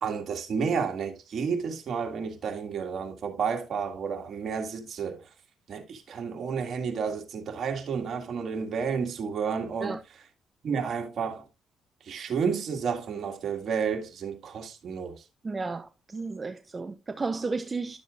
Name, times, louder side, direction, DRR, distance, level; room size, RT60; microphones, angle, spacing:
voice 1, 0.0-5.2 5.7-10.2 10.6-11.4 12.1-15.2, right 6 dB, 55° right, 1.7 m, -31 dB
voice 2, 15.4-18.0, right 4 dB, 30° right, 0.5 m, -33 dB
11.0 x 7.0 x 2.4 m
cardioid pair, 90°, 0 cm